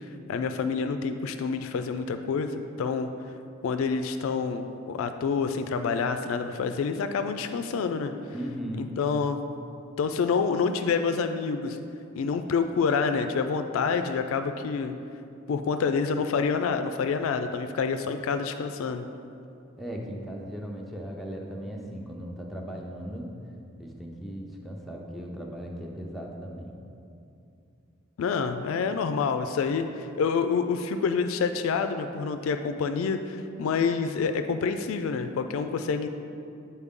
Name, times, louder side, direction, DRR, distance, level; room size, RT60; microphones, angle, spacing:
voice 1, 0.3-3.1 3.6-8.1 8.8-9.4 10.0-11.8 12.2-14.9 15.5-19.0 28.2-36.1, left 5 dB, 80° left, 8 dB, 0.3 m, -27 dB
voice 2, 8.3-9.0 19.8-23.4 23.8-26.7, equal, ahead, -2 dB, 0.5 m, -37 dB
8.1 x 4.3 x 3.6 m, 2.6 s
head